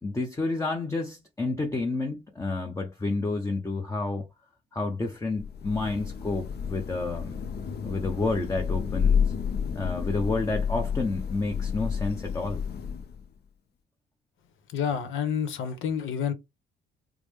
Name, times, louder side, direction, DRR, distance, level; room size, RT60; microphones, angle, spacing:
voice 1, 0.0-4.2 4.7-7.4 7.8-9.3 9.7-12.6, left 3 dB, 15° left, 0.7 m, -30 dB
Thunder / Rain, 5.3-13.3, left 7 dB, 55° left, 0.7 m, -30 dB
voice 2, 14.7-16.3, left 7 dB, 85° left, 0.9 m, -29 dB
4.7 x 2.0 x 3.5 m
cardioid pair, 90°, 20 cm